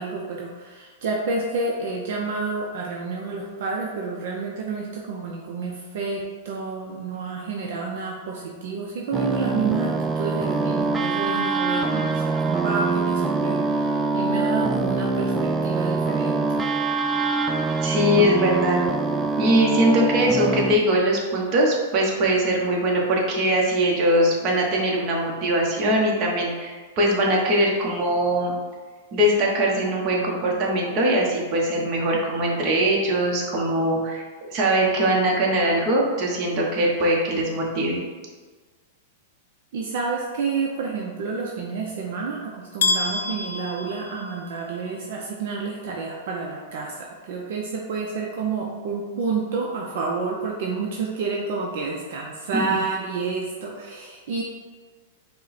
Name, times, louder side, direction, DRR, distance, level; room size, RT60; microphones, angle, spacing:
voice 1, 0.0-16.6 39.7-54.4, right 4 dB, 60° right, -1 dB, 0.6 m, -29 dB
sound 1, 9.1-20.8, right 3 dB, 10° right, 0.3 m, -24 dB
voice 2, 17.8-18.8 19.4-28.6 29.1-34.2 34.5-38.0, right 1 dB, 35° right, -2 dB, 1.0 m, -21 dB
sound 2, 42.8-44.8, left 3 dB, 80° left, 0.4 m, -27 dB
5.2 x 2.2 x 4.1 m, 1.5 s
supercardioid pair, 145°, 0 cm